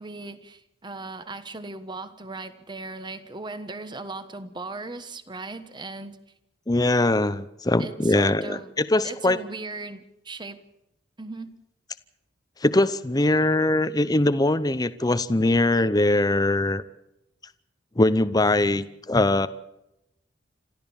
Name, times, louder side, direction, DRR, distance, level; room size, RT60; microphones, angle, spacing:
voice 1, 0.0-6.2 7.8-8.7 9.0-10.6 11.2-11.6, right 3 dB, 25° right, 11 dB, 1.2 m, -37 dB
voice 2, 6.7-9.4 12.6-16.8 18.0-19.5, left 2 dB, 20° left, 13 dB, 0.7 m, -22 dB
27.0 x 13.5 x 7.1 m, 0.86 s
head